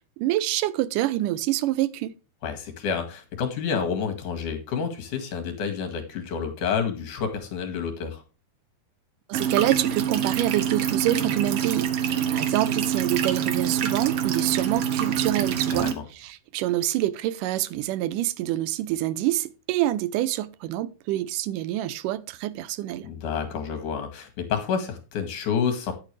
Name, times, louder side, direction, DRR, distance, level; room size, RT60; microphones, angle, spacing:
voice 1, 0.2-2.1 9.3-23.1, right 14 dB, 90° right, 2.3 m, -26 dB
voice 2, 2.4-8.2 15.7-16.0 23.0-25.9, left 6 dB, 75° left, 3.5 m, -29 dB
sound 1, 9.3-15.9, right 9 dB, 60° right, 1.7 m, -26 dB
9.8 x 8.6 x 3.2 m
omnidirectional pair, 3.6 m